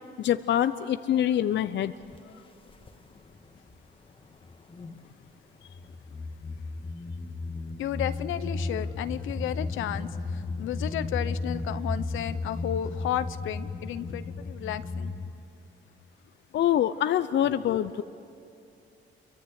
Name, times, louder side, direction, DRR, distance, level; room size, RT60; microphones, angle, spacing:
voice 1, 0.2-1.9 16.5-18.0, left 11 dB, 65° left, 12 dB, 0.7 m, -25 dB
sound 1, 2.0-2.2 2.7-3.8 4.2-5.1 5.6-15.3, left 3 dB, 25° left, 1.6 m, -34 dB
voice 2, 7.8-15.1 17.4-17.8, left 11 dB, 85° left, 12 dB, 1.0 m, -33 dB
28.0 x 24.0 x 8.2 m, 2.6 s
cardioid pair, 90°, 20 cm